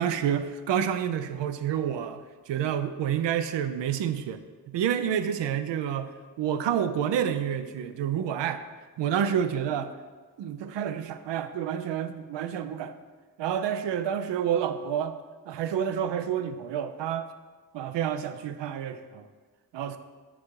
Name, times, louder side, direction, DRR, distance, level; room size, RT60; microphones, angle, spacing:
voice 1, 0.0-4.4 4.7-6.1 6.4-8.6 9.0-9.9 10.4-12.9 13.4-15.2 15.5-17.3 17.7-19.2 19.7-20.0, right 9 dB, 85° right, 10 dB, 0.6 m, -29 dB
9.1 x 3.6 x 4.6 m, 1.4 s
cardioid pair, 50°, 42 cm